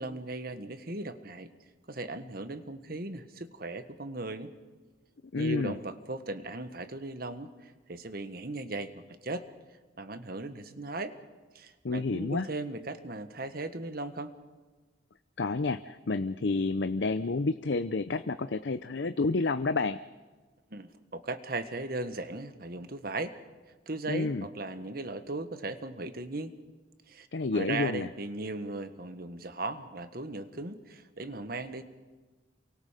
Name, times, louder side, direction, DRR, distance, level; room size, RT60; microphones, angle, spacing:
voice 1, 0.0-1.5 1.9-4.5 5.3-8.9 9.2-9.5 10.0-11.1 11.5-14.3 20.7-23.3 23.9-26.5 27.1-27.3 27.5-31.8, right 2 dB, 55° right, 10 dB, 1.5 m, -37 dB
voice 2, 5.3-5.8 11.8-12.5 15.4-20.0 24.1-24.5 27.3-28.1, left 3 dB, 70° left, 11 dB, 0.6 m, -29 dB
28.5 x 23.5 x 5.2 m, 1.3 s
head